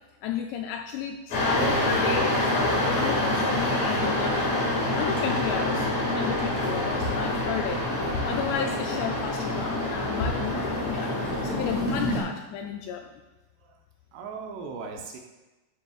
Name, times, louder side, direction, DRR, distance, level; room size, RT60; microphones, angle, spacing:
voice 1, 0.2-4.4 4.9-7.9 8.3-13.2, left 8 dB, 85° left, 4 dB, 2.5 m, -33 dB
sound 1, 1.3-12.2, left 1 dB, 50° left, 2.7 m, -26 dB
voice 2, 14.1-15.2, right 5 dB, 75° right, 2 dB, 2.8 m, -38 dB
12.5 x 7.1 x 2.4 m, 1.1 s
omnidirectional pair, 5.3 m